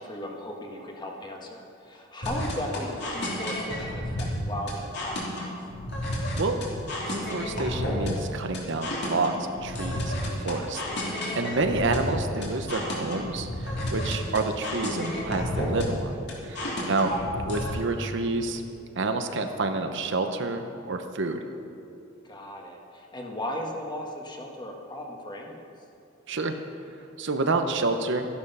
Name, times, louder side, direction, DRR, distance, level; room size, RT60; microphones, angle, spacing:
voice 1, 0.0-5.5 11.3-11.6 16.8-17.1 22.2-25.7, left 1 dB, 20° left, 1 dB, 1.5 m, -37 dB
sound 1, 2.2-17.7, left 1 dB, 55° left, 3.0 m, -31 dB
voice 2, 7.1-10.1 10.4-16.2 16.4-17.1 17.4-18.6 19.0-21.4 26.3-26.6 27.2-28.3, right 3 dB, 65° right, 6 dB, 0.9 m, -29 dB
13.0 x 11.5 x 5.5 m, 2.6 s
head